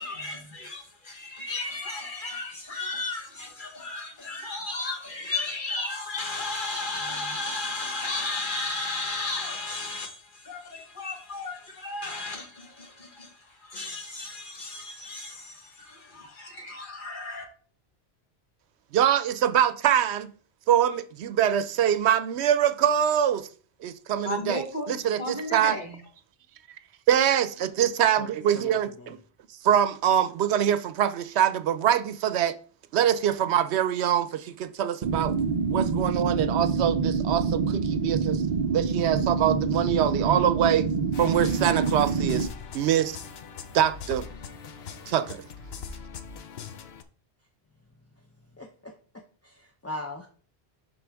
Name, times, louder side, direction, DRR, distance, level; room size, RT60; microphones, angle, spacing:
voice 1, 0.0-17.5 24.2-24.9 25.2-26.0, left 2 dB, 50° left, 1.5 m, -34 dB
voice 2, 18.9-20.3 20.7-23.5 23.8-25.8 27.1-29.2 29.6-32.5 32.9-35.3 35.7-38.4 38.7-40.9 41.2-42.5 42.7-43.2 43.7-44.3 45.1-45.4, right 10 dB, 85° right, 0.9 m, -24 dB
voice 3, 28.5-29.1 48.6-48.9 49.4-50.3, left 1 dB, 20° left, 0.5 m, -39 dB
sound 1, 35.0-42.5, right 5 dB, 50° right, 0.6 m, -26 dB
sound 2, 41.1-47.0, left 6 dB, 70° left, 0.9 m, -41 dB
11.0 x 3.7 x 3.5 m
omnidirectional pair, 1.1 m